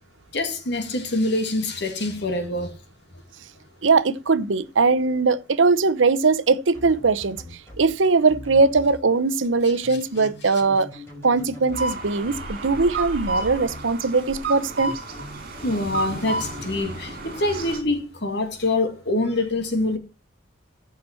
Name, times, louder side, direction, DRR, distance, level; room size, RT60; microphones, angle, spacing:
voice 1, 0.3-2.7 10.4-10.6 15.6-20.0, left 2 dB, 65° left, 2.4 m, -25 dB
voice 2, 3.8-7.4 7.8-10.9 11.2-14.9, right 4 dB, 75° right, 0.8 m, -20 dB
sound 1, 6.7-7.9 8.3-8.9 9.8-12.8 13.2-13.9 14.8-16.6, left 1 dB, 15° left, 5.1 m, -41 dB
sound 2, 11.7-17.8, right 3 dB, 50° right, 4.7 m, -32 dB
14.5 x 5.9 x 4.5 m
head